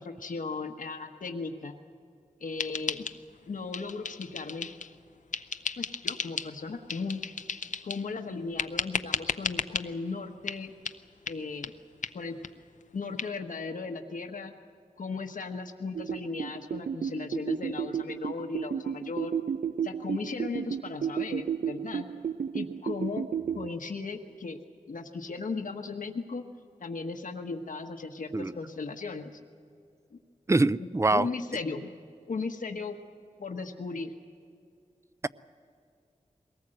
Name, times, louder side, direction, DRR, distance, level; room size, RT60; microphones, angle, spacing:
voice 1, 0.0-1.7 2.4-3.1 3.5-4.7 5.8-7.2 7.8-10.7 11.3-11.7 12.1-12.4 12.9-14.5 15.0-19.3 19.8-22.1 22.5-23.3 23.5-24.6 24.9-26.4 26.8-29.4 30.1-30.2 30.8-31.9 32.3-33.0 33.4-34.1, left 4 dB, 90° left, 4 dB, 1.2 m, -36 dB
sound 1, 2.6-3.4 3.7-4.9 5.3-6.5 6.9-8.1 8.6-9.9 10.5-10.6 10.8-11.0 11.3-11.4 11.6-11.7 12.0-12.1 12.4-12.5 12.8-12.9 13.2-13.3, left 5 dB, 70° left, 0.6 m, -34 dB
sound 2, 16.0-23.7, right 7 dB, 80° right, 0.5 m, -33 dB
voice 2, 30.5-31.3, right 2 dB, 20° right, 17 dB, 0.4 m, -24 dB
22.5 x 19.0 x 7.8 m, 2.3 s
wide cardioid pair, 90°, 13 cm